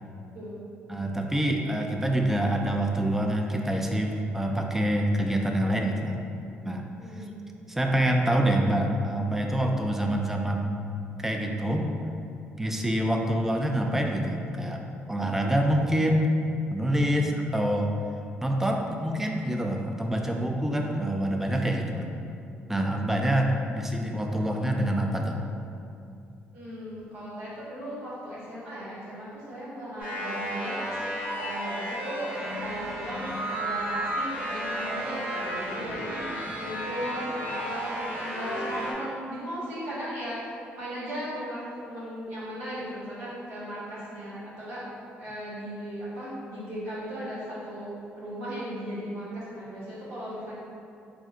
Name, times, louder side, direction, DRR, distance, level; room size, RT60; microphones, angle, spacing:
voice 1, 0.9-6.2 6.6-6.9 7.7-10.8 11.2-11.9 12.6-14.8 15.1-16.3 16.7-17.9 18.4-22.1 22.7-25.4, right 1 dB, 10° right, 2 dB, 0.3 m, -26 dB
voice 2, 7.0-7.4 16.9-17.4 20.1-20.4 26.5-44.9 45.2-47.9 48.1-50.6, equal, 85° right, -9 dB, 1.4 m, -37 dB
sound 1, 30.0-38.9, equal, 45° right, 1.3 m, -33 dB
3.6 x 2.1 x 3.6 m, 2.6 s
cardioid pair, 115°, 4 cm